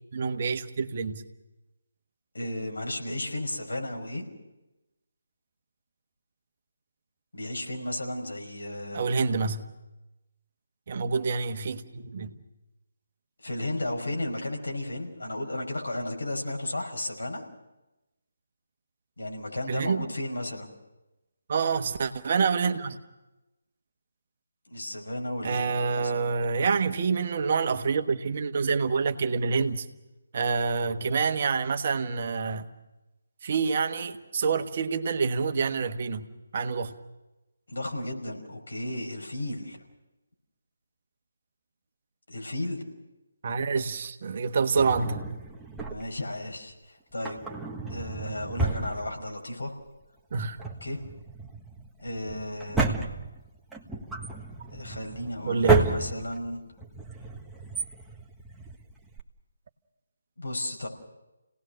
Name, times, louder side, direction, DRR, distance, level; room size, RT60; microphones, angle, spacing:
voice 1, 0.1-1.2 8.9-9.7 10.9-12.3 19.7-20.1 21.5-23.0 25.4-29.9 30.3-32.7 33.4-36.2 36.5-36.9 43.4-45.2 50.3-50.6 55.5-55.9, right 5 dB, 45° right, 7 dB, 1.3 m, -27 dB
voice 2, 2.3-4.3 7.3-9.0 13.4-17.4 19.2-20.7 24.7-26.3 37.7-39.8 42.3-42.8 45.9-47.4 47.9-49.7 50.8-51.0 52.0-52.9 54.7-56.6 60.4-60.9, left 1 dB, 80° left, 1 dB, 5.6 m, -34 dB
Drawer open or close, 44.8-46.3 47.1-49.6 49.9-50.0 50.5-59.2, right 3 dB, 5° right, 1.4 m, -31 dB
29.0 x 18.5 x 6.5 m, 0.99 s
figure-of-eight pair, 150°, 0 cm